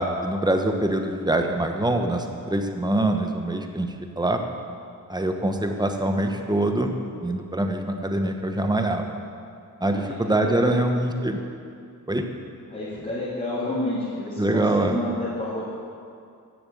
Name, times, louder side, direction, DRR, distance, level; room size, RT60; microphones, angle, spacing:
voice 1, 0.0-3.9 4.2-4.4 5.1-6.9 7.2-9.1 9.8-11.4 12.1-12.2 14.4-15.0, right 1 dB, 10° right, 4 dB, 1.1 m, -24 dB
voice 2, 9.8-10.8 12.7-15.7, left 1 dB, 20° left, -10 dB, 3.0 m, -30 dB
10.5 x 6.9 x 7.9 m, 2.4 s
cardioid pair, 85°, 35 cm